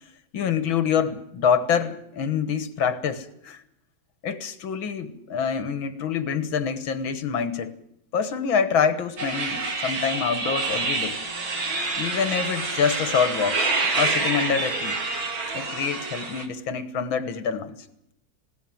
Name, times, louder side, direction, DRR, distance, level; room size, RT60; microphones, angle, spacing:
voice 1, 0.3-3.6 4.2-7.7 8.1-11.2 11.9-13.6 13.9-15.0 15.5-17.8, left 7 dB, 80° left, 12 dB, 2.1 m, -26 dB
sound 1, 9.2-16.4, right 3 dB, 85° right, 3.5 m, -27 dB
20.5 x 17.0 x 7.8 m, 0.77 s
omnidirectional pair, 2.1 m